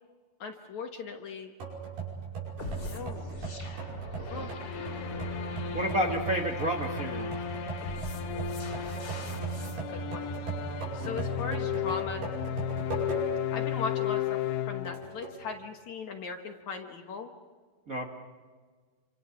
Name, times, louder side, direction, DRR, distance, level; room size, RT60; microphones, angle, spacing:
voice 1, 0.4-1.5 2.8-3.2 4.3-4.5 9.6-10.3 10.9-12.3 13.5-14.4 14.7-17.3, left 5 dB, 60° left, 4 dB, 2.1 m, -38 dB
sound 1, 1.6-13.5 14.0-14.1 14.9-15.4, right 5 dB, 70° right, 7.5 m, -38 dB
sound 2, 2.6-9.8, left 3 dB, 30° left, 2.8 m, -44 dB
sound 3, 4.3-15.4, left 11 dB, 80° left, 3.1 m, -35 dB
voice 2, 5.7-7.3 17.9-18.1, right 1 dB, 45° right, 1 dB, 1.0 m, -30 dB
28.0 x 26.0 x 6.0 m, 1.5 s
omnidirectional pair, 4.6 m